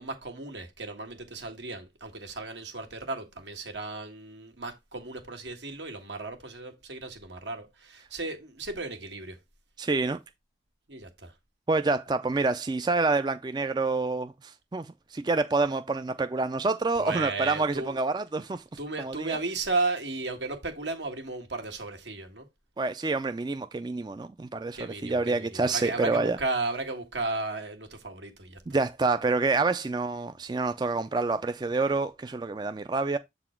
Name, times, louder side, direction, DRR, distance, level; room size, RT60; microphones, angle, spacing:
voice 1, 0.0-9.4 10.9-11.3 17.0-18.0 18.8-22.5 24.7-28.6, right 3 dB, 85° right, 1.8 m, -34 dB
voice 2, 9.8-10.2 11.7-18.6 19.0-19.4 22.8-26.4 28.7-33.2, right 3 dB, 25° right, 0.3 m, -27 dB
7.6 x 4.1 x 4.4 m
head